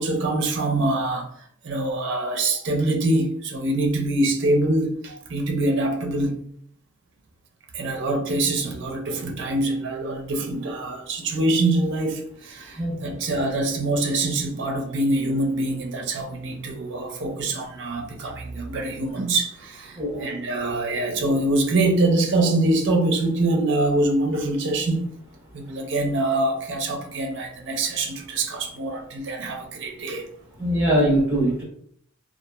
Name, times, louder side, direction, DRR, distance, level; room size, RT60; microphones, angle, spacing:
voice 1, 0.0-6.3 7.7-25.1 25.5-30.3, right 2 dB, 55° right, 0.6 m, -24 dB
voice 2, 30.6-31.6, right 1 dB, 10° right, 1.0 m, -21 dB
3.0 x 2.4 x 2.3 m
head